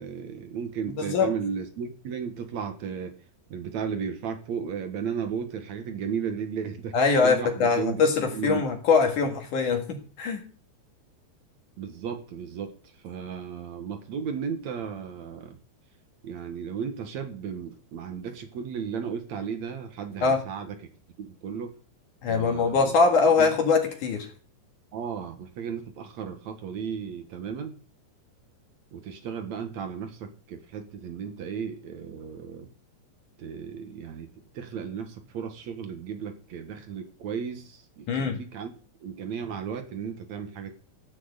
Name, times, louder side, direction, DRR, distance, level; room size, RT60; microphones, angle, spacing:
voice 1, 0.0-3.1 3.5-7.0 7.2-8.0 8.3-8.6 11.8-15.6 16.2-20.8 21.2-21.8 22.3-22.9 23.4-23.5 24.9-27.8 28.9-32.7 33.4-34.3 34.5-38.7 39.0-40.7, right 7 dB, 60° right, 7 dB, 2.0 m, -34 dB
voice 2, 1.0-1.3 6.9-10.4 20.2-20.4 22.2-24.3 38.1-38.4, left 4 dB, 55° left, 4 dB, 2.9 m, -23 dB
15.5 x 6.2 x 8.1 m, 0.40 s
omnidirectional pair, 5.0 m